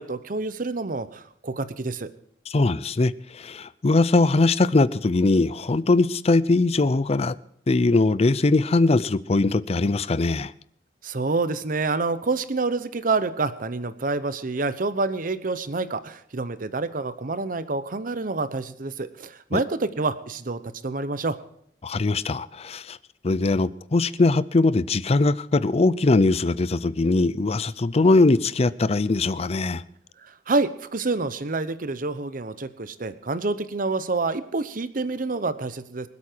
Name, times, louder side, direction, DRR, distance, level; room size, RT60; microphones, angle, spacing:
voice 1, 0.0-2.1 11.0-21.4 30.2-36.1, right 3 dB, 50° right, 0.9 m, -27 dB
voice 2, 2.5-7.4 7.7-10.5 19.5-19.6 21.8-23.0 23.2-29.8, left 3 dB, 35° left, 0.5 m, -21 dB
25.0 x 8.4 x 4.5 m
head